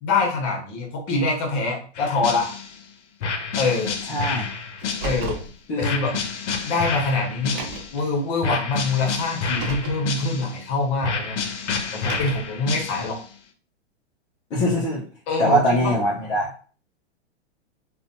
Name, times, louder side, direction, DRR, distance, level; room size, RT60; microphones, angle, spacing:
voice 1, 0.0-2.5 3.5-4.0 5.0-5.4 5.8-6.2 6.6-7.6 7.9-11.4 12.0-13.2 15.3-15.9, left 3 dB, 35° left, 1 dB, 0.9 m, -24 dB
sound 1, 2.0-2.8 3.2-5.4 5.8-8.0 8.4-10.6 11.0-13.3, left 5 dB, 85° left, 0.6 m, -29 dB
voice 2, 4.1-4.5 5.7-6.1 14.5-15.0 15.4-16.5, equal, 15° left, -6 dB, 0.3 m, -22 dB
Car, 4.8-5.5 6.6-6.7 7.4-8.0 9.3-10.0 11.8-12.6, right 3 dB, 40° right, 0.6 m, -33 dB
2.5 x 2.2 x 2.6 m, 0.41 s
hypercardioid pair, 130°, 34 cm